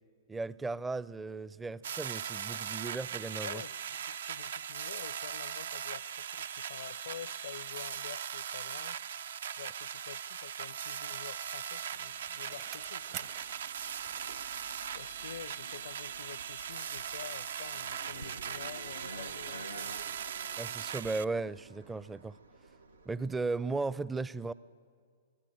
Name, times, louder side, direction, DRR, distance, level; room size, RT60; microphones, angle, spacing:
voice 1, 0.3-3.6 20.6-22.4 23.1-24.5, right 3 dB, 10° right, 0.5 m, -36 dB
sound 1, 1.8-21.2, right 8 dB, 65° right, 0.5 m, -39 dB
voice 2, 3.4-9.0 9.6-13.3 14.9-20.2, left 9 dB, 65° left, 0.6 m, -48 dB
Bicycle, 11.1-15.7 16.1-16.2, right 13 dB, 40° right, 0.9 m, -51 dB
sound 2, 13.1-23.7, right 3 dB, 90° right, 1.1 m, -51 dB
26.0 x 20.5 x 7.8 m
hypercardioid pair, 115°, 0 cm